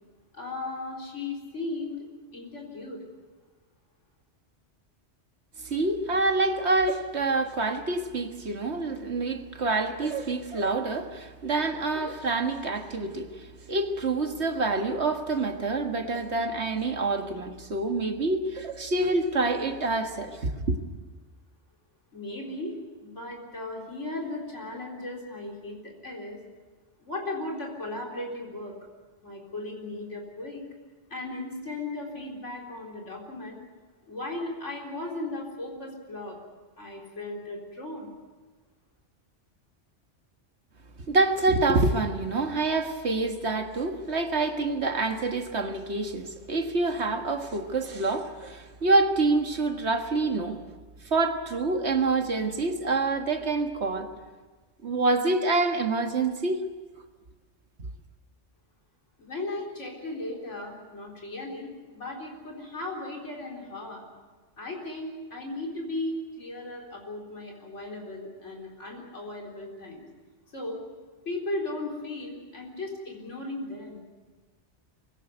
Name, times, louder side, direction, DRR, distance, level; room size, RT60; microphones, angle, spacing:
voice 1, 0.3-3.1 22.1-22.8 23.0-26.4 27.0-28.7 29.2-30.7 31.1-33.6 34.1-36.4 36.8-38.1 59.2-64.0 64.6-70.0 70.5-70.8 71.2-74.0, left 2 dB, 90° left, 4.4 m, -36 dB
voice 2, 5.6-20.8 41.1-50.6 51.1-54.1 54.8-56.6, right 3 dB, 65° right, 2.0 m, -27 dB
24.0 x 17.0 x 9.3 m
omnidirectional pair, 1.2 m